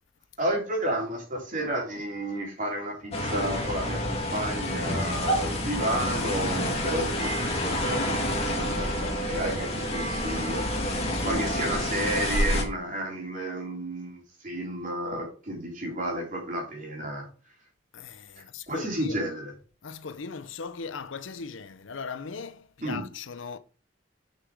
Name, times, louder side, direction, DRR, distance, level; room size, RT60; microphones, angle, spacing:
voice 1, 0.4-10.6 11.2-17.2 18.7-19.5 22.8-23.1, right 1 dB, 40° right, 3.1 m, -32 dB
sound 1, 3.1-12.6, left 1 dB, 30° left, 2.0 m, -28 dB
voice 2, 17.9-19.2 19.8-23.6, left 5 dB, 75° left, 0.7 m, -38 dB
6.7 x 5.8 x 4.7 m
head